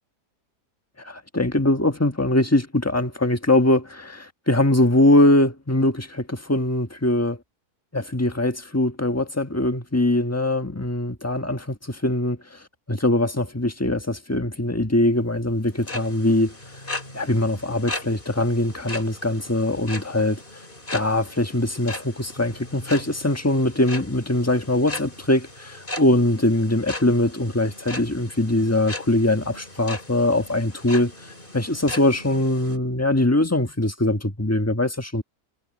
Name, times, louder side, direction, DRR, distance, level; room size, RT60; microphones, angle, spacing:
voice 1, 1.0-7.4 7.9-12.6 12.9-16.5 17.1-20.4 20.9-31.1 31.5-35.2, left 1 dB, 10° left, 1.2 m, -22 dB
sound 1, 15.6-32.8, left 2 dB, 30° left, 4.5 m, -38 dB
omnidirectional pair, 1.7 m